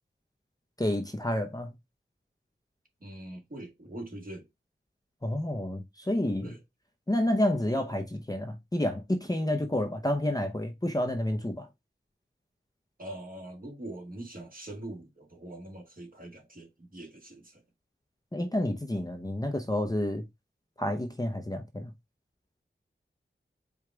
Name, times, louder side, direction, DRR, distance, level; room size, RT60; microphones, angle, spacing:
voice 1, 0.8-1.7 5.2-6.5 7.1-11.7 18.3-20.2 20.8-21.9, left 1 dB, 20° left, 0.7 m, -29 dB
voice 2, 3.0-4.5 6.4-6.6 13.0-17.6, right 1 dB, 45° right, 1.6 m, -43 dB
4.9 x 2.4 x 4.5 m
wide cardioid pair, 70°, 21 cm